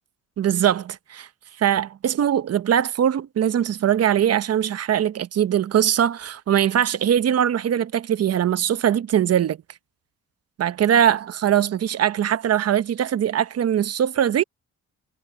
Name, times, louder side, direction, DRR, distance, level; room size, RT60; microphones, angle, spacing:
voice 1, 0.4-1.3 1.6-9.6 10.6-14.4, right 10 dB, 55° right, 1.0 m, -21 dB
cardioid pair, 90°, 30 cm